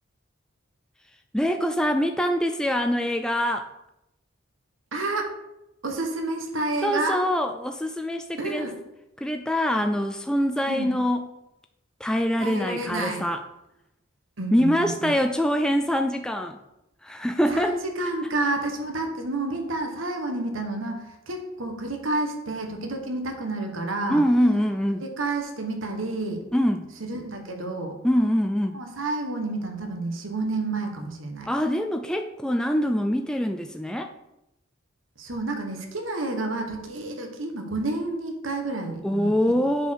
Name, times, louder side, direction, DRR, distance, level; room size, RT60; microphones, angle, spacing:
voice 1, 1.3-3.7 6.8-8.7 9.2-11.2 12.0-13.4 14.5-16.6 17.0-17.8 24.1-25.0 26.5-26.9 28.0-28.8 31.5-34.1 39.0-39.9, equal, 5° left, 5 dB, 0.4 m, -24 dB
voice 2, 4.9-5.3 5.8-7.2 8.4-8.7 10.7-10.9 12.4-13.2 14.4-15.2 17.5-24.2 25.0-26.4 27.1-28.0 28.7-31.5 35.2-39.3, right 2 dB, 80° right, 3 dB, 1.5 m, -30 dB
8.0 x 4.5 x 6.6 m, 0.89 s
head